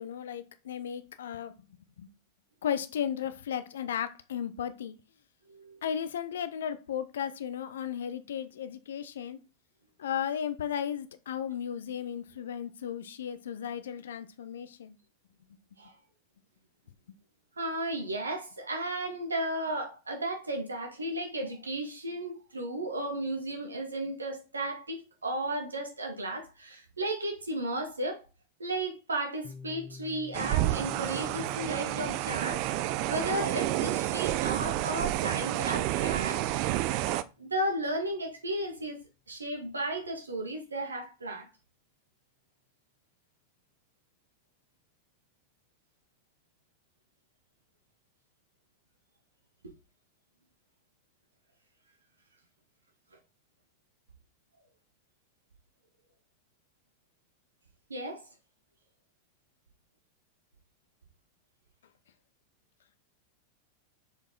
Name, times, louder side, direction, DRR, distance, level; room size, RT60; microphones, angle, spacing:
voice 1, 0.0-1.5 2.0-2.1 2.6-5.0 5.8-9.4 10.0-15.0, left 9 dB, 60° left, 0.8 m, -35 dB
voice 2, 17.6-28.2 28.6-32.7 33.0-36.4 37.4-39.0 39.3-41.5 57.9-58.2, right 1 dB, 75° right, 1.8 m, -34 dB
Piano, 29.4-36.9, left 4 dB, 35° left, 1.5 m, -52 dB
sound 1, 30.3-37.2, right 15 dB, 45° right, 0.5 m, -30 dB
6.6 x 5.0 x 3.9 m
figure-of-eight pair, 90°, 0 cm